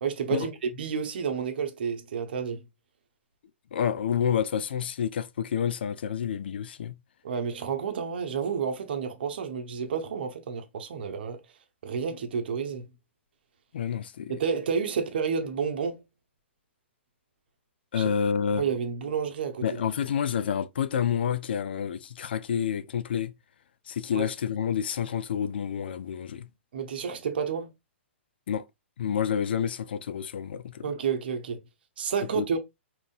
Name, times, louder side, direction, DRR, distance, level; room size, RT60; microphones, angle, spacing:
voice 1, 0.0-2.6 7.2-11.4 11.8-12.9 14.3-16.0 17.9-18.1 18.5-19.8 24.1-24.3 26.7-27.7 30.8-31.6 32.0-32.6, right 6 dB, 55° right, 0.9 m, -30 dB
voice 2, 3.7-7.0 13.7-14.3 17.9-18.6 19.6-23.3 23.9-26.5 28.5-28.6 29.0-30.9 32.4-32.6, left 8 dB, 55° left, 0.4 m, -29 dB
5.1 x 3.0 x 2.4 m
figure-of-eight pair, 115°, 7 cm